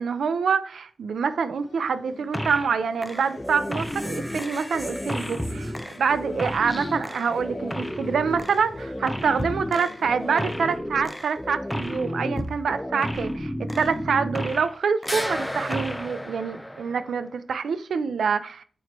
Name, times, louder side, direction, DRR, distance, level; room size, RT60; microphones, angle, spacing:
voice 1, 0.0-18.6, right 6 dB, 80° right, 0.5 m, -26 dB
sound 1, 1.1-10.8, left 3 dB, 60° left, 2.1 m, -45 dB
sound 2, 2.3-2.8 3.0-14.8 15.0-17.2, equal, 5° left, 0.4 m, -32 dB
8.8 x 3.1 x 4.4 m
wide cardioid pair, 180°, 0 cm